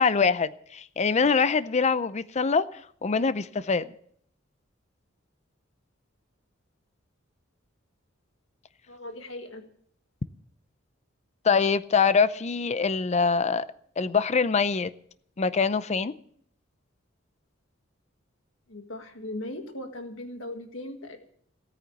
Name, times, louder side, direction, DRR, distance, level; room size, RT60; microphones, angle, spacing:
voice 1, 0.0-3.9 11.4-13.7 14.0-14.9 15.4-16.1, left 5 dB, 35° left, 0.5 m, -24 dB
voice 2, 8.9-9.6 18.7-21.2, left 1 dB, 75° left, 1.8 m, -38 dB
17.0 x 9.3 x 7.1 m
head